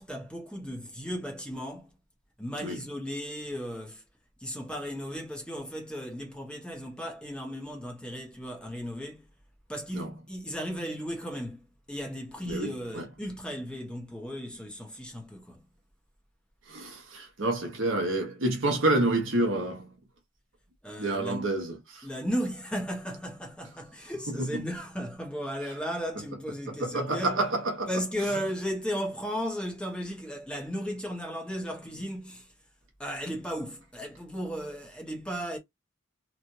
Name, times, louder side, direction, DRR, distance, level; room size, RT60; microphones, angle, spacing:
voice 1, 0.0-1.9 2.4-4.0 4.4-9.3 9.7-15.6 20.8-21.5 22.0-27.4 27.9-32.5 33.0-35.6, equal, 5° left, 1.0 m, -35 dB
voice 2, 12.5-13.1 16.7-19.9 21.0-22.0 24.4-24.6 26.8-27.9, right 2 dB, 70° right, 1.1 m, -28 dB
3.1 x 2.5 x 2.7 m
head